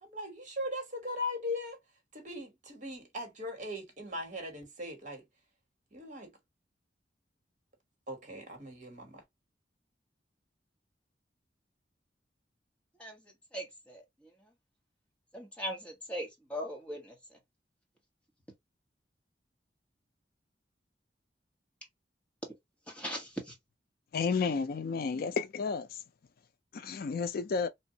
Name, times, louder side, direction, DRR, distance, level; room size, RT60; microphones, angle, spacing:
voice 1, 0.0-1.8 2.1-5.2 5.9-6.3 8.1-9.2, left 1 dB, 45° right, 1.3 m, -39 dB
voice 2, 13.5-14.0 15.3-17.1 22.9-23.5, equal, 5° left, 1.3 m, -39 dB
voice 3, 24.1-25.9 26.7-27.7, left 5 dB, 55° left, 0.4 m, -31 dB
3.1 x 2.5 x 2.7 m
head